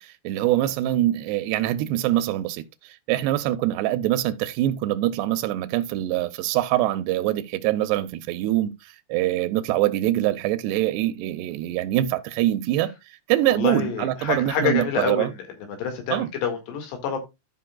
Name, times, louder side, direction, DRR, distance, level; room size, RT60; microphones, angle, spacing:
voice 1, 0.0-12.9 13.3-15.3 16.1-16.3, right 14 dB, 85° right, 2.7 m, -24 dB
voice 2, 13.5-15.3 15.8-17.2, left 6 dB, 85° left, 4.1 m, -27 dB
12.5 x 5.8 x 2.3 m
omnidirectional pair, 4.7 m